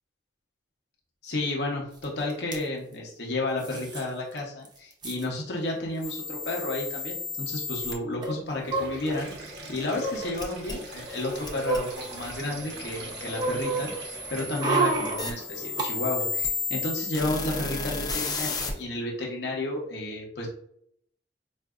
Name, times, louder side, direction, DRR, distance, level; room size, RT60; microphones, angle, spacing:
voice 1, 1.2-20.5, left 2 dB, 70° left, -2 dB, 0.9 m, -32 dB
sound 1, 2.0-2.1 2.3-2.6 3.6-4.0 4.4-4.5 4.7-5.3 6.1-6.2 6.4-6.6 8.2-9.4 9.9-10.3 10.9-12.6 12.9-15.9 16.2-16.3, right 3 dB, 25° right, 0.6 m, -31 dB
sound 2, 6.0-7.9 10.4-18.7, left 4 dB, 25° left, 0.5 m, -34 dB
Sink (filling or washing), 8.6-15.4, right 1 dB, 70° right, 0.8 m, -42 dB
4.4 x 2.6 x 2.4 m, 0.68 s
head